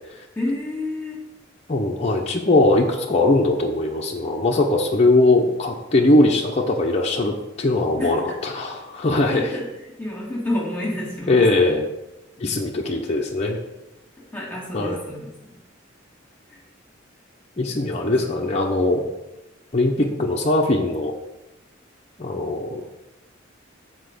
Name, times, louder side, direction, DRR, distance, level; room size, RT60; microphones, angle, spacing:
voice 1, 0.4-1.2 8.0-8.4 9.3-9.7 10.0-11.4 12.9-13.0 14.3-15.6 16.5-16.6 17.8-18.5, left 1 dB, 10° left, -4 dB, 2.0 m, -30 dB
voice 2, 1.7-9.5 11.3-11.9 12.4-13.6 14.7-15.0 17.6-19.0 19.7-21.1 22.2-22.8, left 2 dB, 35° left, -1 dB, 0.8 m, -20 dB
8.1 x 4.4 x 6.6 m, 0.99 s
head